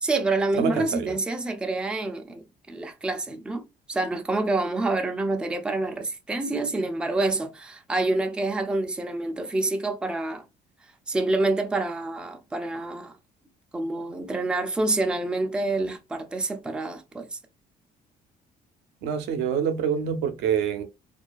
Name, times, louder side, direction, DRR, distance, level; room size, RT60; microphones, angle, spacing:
voice 1, 0.0-10.5 10.8-13.2 13.7-17.4, right 2 dB, 5° right, 0.3 m, -27 dB
voice 2, 0.5-1.2 19.0-20.8, right 7 dB, 85° right, 0.5 m, -26 dB
2.3 x 2.3 x 2.3 m
cardioid pair, 110°, 17 cm